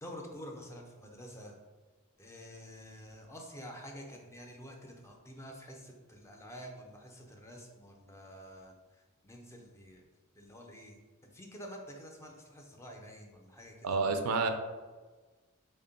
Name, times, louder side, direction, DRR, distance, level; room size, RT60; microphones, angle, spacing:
voice 1, 0.0-1.6 2.2-10.0 10.4-14.0, equal, 10° left, 1 dB, 0.4 m, -49 dB
voice 2, 13.8-14.5, right 4 dB, 75° right, 6 dB, 0.4 m, -29 dB
3.6 x 2.1 x 3.9 m, 1.3 s
head